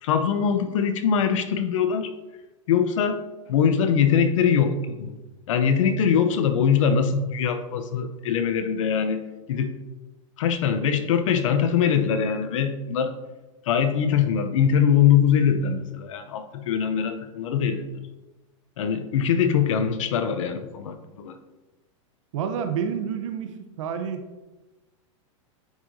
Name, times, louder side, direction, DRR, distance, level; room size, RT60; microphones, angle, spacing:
voice 1, 0.0-2.1 2.7-3.2 3.5-5.2 5.5-9.2 9.5-9.7 10.4-13.1 13.7-17.9 18.8-21.4, left 7 dB, 75° left, 9 dB, 0.8 m, -22 dB
voice 2, 22.3-24.3, right 7 dB, 70° right, 6 dB, 0.9 m, -29 dB
9.4 x 4.9 x 2.8 m, 1.1 s
hypercardioid pair, 130°, 17 cm